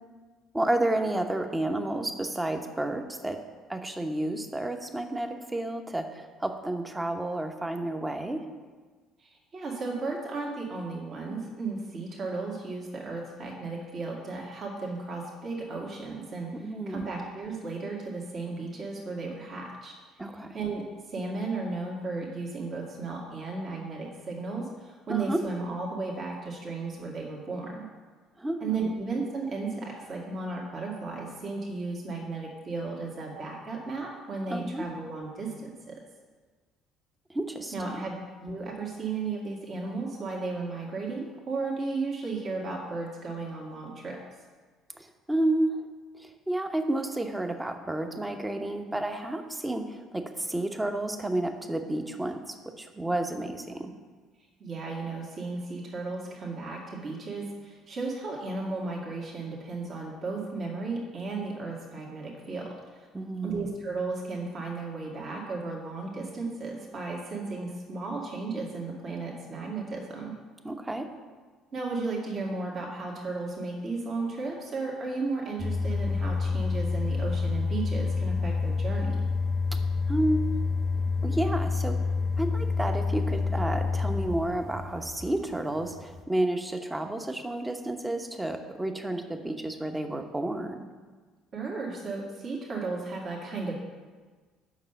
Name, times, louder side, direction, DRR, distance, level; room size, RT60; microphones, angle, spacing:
voice 1, 0.5-3.4 3.7-8.4 16.6-17.1 20.2-20.6 25.1-25.4 28.4-28.9 34.5-34.8 37.3-37.7 44.9-45.9 46.1-53.9 63.1-63.7 70.6-71.1 79.7-79.8 80.1-80.5 81.2-82.1 82.4-90.9, right 1 dB, 15° right, 6 dB, 1.0 m, -31 dB
voice 2, 9.2-16.5 16.9-19.9 20.5-27.8 28.6-36.0 37.7-44.2 54.6-63.1 63.4-70.3 71.7-79.2 86.8-86.9 91.5-93.8, right 3 dB, 45° right, -2 dB, 1.8 m, -34 dB
sound 1, 75.6-86.2, left 4 dB, 15° left, 0.9 m, -28 dB
7.1 x 5.7 x 6.7 m, 1.4 s
hypercardioid pair, 55°, 0 cm